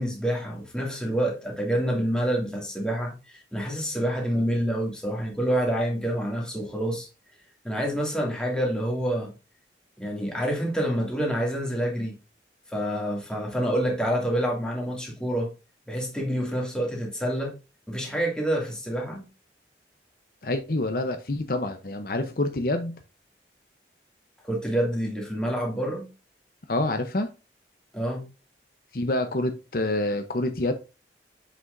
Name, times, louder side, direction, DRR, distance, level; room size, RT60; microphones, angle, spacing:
voice 1, 0.0-7.1 7.6-9.3 10.0-12.2 12.7-15.5 15.9-17.5 17.9-19.3 24.4-26.1 27.9-28.2, equal, 5° left, 2.3 m, -27 dB
voice 2, 20.4-23.0 26.7-27.3 28.9-30.7, left 2 dB, 55° left, 0.8 m, -27 dB
7.8 x 6.1 x 2.6 m
head